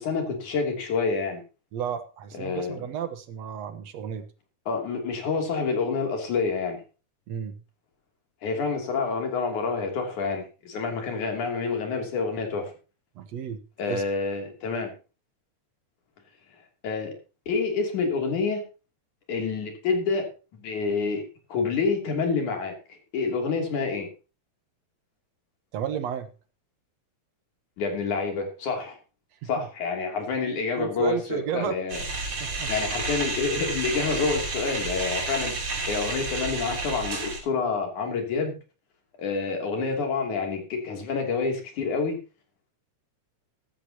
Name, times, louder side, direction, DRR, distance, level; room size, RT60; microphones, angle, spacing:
voice 1, 0.0-1.4 2.3-2.8 4.7-6.8 8.4-12.7 13.8-14.9 16.8-17.1 17.5-18.6 19.3-21.2 21.5-24.1 27.8-29.0 29.4-32.0 32.7-35.6 35.9-38.5 39.2-42.2, left 4 dB, 80° left, 3 dB, 4.3 m, -28 dB
voice 2, 1.7-4.3 7.3-7.6 13.2-13.6 13.9-14.0 25.7-26.3 29.4-29.7 30.8-31.8 32.4-32.7, right 9 dB, 65° right, 10 dB, 2.2 m, -32 dB
sound 1, 31.9-37.4, right 3 dB, 50° right, 5.2 m, -31 dB
14.5 x 13.5 x 2.9 m, 0.32 s
omnidirectional pair, 3.4 m